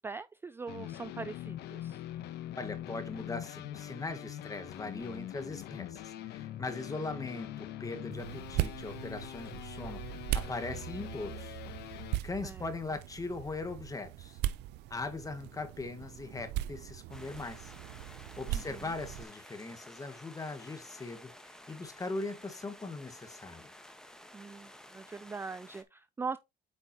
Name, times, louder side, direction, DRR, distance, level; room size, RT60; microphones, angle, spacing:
voice 1, 0.0-2.0 12.4-12.7 18.5-18.9 24.3-26.4, right 4 dB, 15° right, 0.3 m, -41 dB
sound 1, 0.7-12.2, left 12 dB, 80° left, 0.9 m, -43 dB
voice 2, 2.6-11.6 11.9-14.4 14.9-17.7 18.1-23.7, left 3 dB, 20° left, 1.4 m, -40 dB
sound 2, 8.1-19.2, right 14 dB, 85° right, 0.5 m, -39 dB
sound 3, 17.1-25.8, equal, 5° left, 1.2 m, -53 dB
8.3 x 5.2 x 2.8 m
cardioid pair, 110°, 17 cm